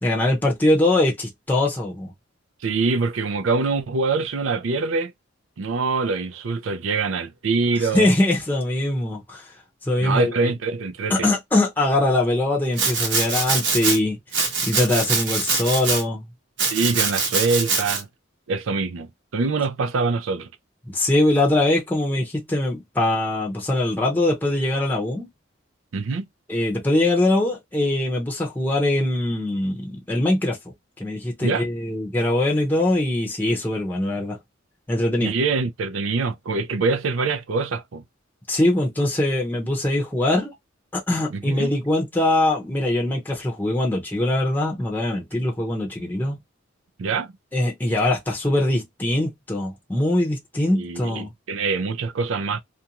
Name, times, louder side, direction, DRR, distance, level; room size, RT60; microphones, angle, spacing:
voice 1, 0.0-2.1 7.9-9.4 9.9-10.5 11.1-14.2 14.6-16.2 20.9-25.3 26.5-30.6 31.0-34.4 34.9-35.3 38.5-40.5 40.9-46.4 47.5-51.3, left 1 dB, 10° left, 0.7 m, -22 dB
voice 2, 2.6-5.1 5.6-8.1 10.0-11.3 16.7-18.1 18.5-20.5 25.9-26.2 31.4-31.7 35.2-38.0 41.3-41.7 47.0-47.3 50.7-52.6, right 4 dB, 80° right, 0.5 m, -24 dB
Domestic sounds home sounds, 12.8-14.0 14.3-16.0 16.6-18.0, right 4 dB, 60° right, 0.9 m, -23 dB
2.5 x 2.2 x 2.8 m
head